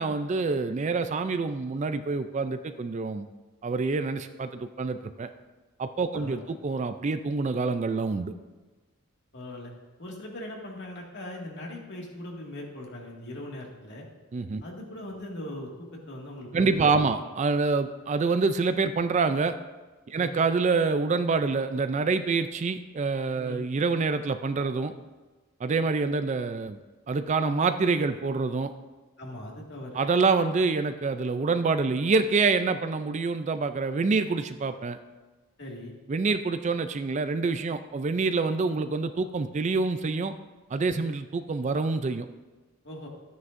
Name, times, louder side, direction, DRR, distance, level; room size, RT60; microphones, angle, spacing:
voice 1, 0.0-3.3 3.6-5.3 5.8-8.3 14.3-14.6 16.5-19.5 20.1-24.9 25.6-26.8 27.1-28.7 29.9-35.0 36.1-40.3 40.7-42.3, right 4 dB, 35° right, 10 dB, 0.3 m, -26 dB
voice 2, 6.1-6.4 9.3-9.7 10.0-14.1 14.6-17.2 20.2-20.4 23.4-23.7 29.2-30.0 35.6-35.9 41.0-41.1 42.8-43.1, left 1 dB, 50° left, -1 dB, 2.0 m, -40 dB
13.5 x 9.5 x 2.6 m, 1.3 s
head